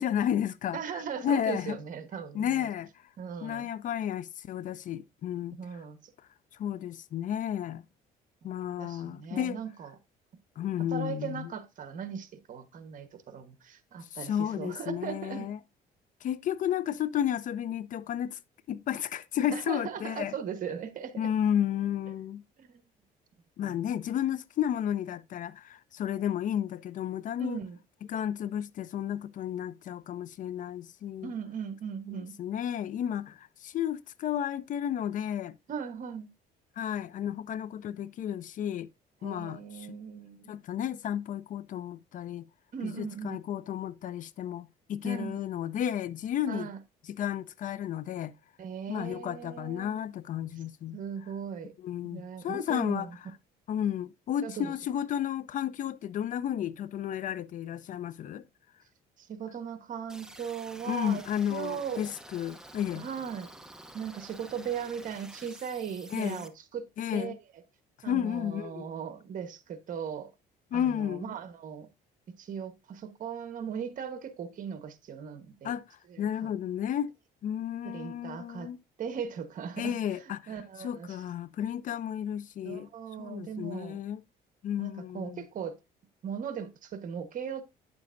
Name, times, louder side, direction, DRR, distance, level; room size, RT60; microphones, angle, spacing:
voice 1, 0.0-1.8 2.3-2.9 3.4-5.6 6.5-7.9 8.4-9.6 10.6-11.5 14.0-15.6 16.2-18.4 18.7-20.3 21.2-22.4 23.6-27.6 28.1-31.3 32.4-35.5 36.8-38.9 39.2-39.6 39.9-40.0 40.5-42.5 42.8-46.7 47.1-48.3 48.9-51.0 51.8-53.1 53.7-58.4 60.9-63.1 66.1-66.5 67.0-67.4 68.0-68.9 70.7-71.3 75.6-77.1 77.4-78.8 79.8-80.5 80.8-82.9 83.2-84.2 84.6-85.4, left 10 dB, 50° left, 0.5 m, -32 dB
voice 2, 0.7-2.7 3.2-3.7 5.5-6.1 8.8-9.9 10.9-15.5 19.5-21.3 22.6-22.8 23.6-23.8 27.4-27.8 31.2-32.4 35.7-36.3 39.2-40.5 42.7-43.4 45.0-45.4 46.5-46.8 48.6-50.0 50.9-51.7 52.1-53.2 54.4-54.7 59.2-61.2 61.5-62.0 62.9-63.5 63.9-66.9 67.1-67.3 68.0-70.3 70.7-71.9 72.4-75.8 76.1-76.5 77.8-78.7 79.0-80.0 80.5-81.2 82.6-84.0 84.8-85.8 86.2-87.6, right 7 dB, 50° right, 1.3 m, -38 dB
sound 1, 60.1-66.5, right 1 dB, 5° right, 0.8 m, -49 dB
9.4 x 6.9 x 2.6 m
cardioid pair, 110°, 17 cm